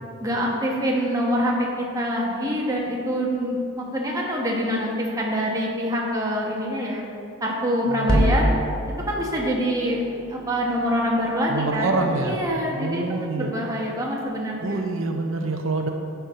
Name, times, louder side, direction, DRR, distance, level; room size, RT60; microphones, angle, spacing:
voice 1, 0.2-7.0 7.4-8.5 9.1-10.0 10.3-14.8, equal, 15° right, -3 dB, 1.3 m, -25 dB
voice 2, 7.9-8.2 11.5-12.4 12.8-13.5 14.6-15.9, right 3 dB, 75° right, 3 dB, 0.7 m, -26 dB
sound 1, 8.1-12.4, equal, 5° left, 0.9 m, -27 dB
10.0 x 4.7 x 5.6 m, 2.5 s
head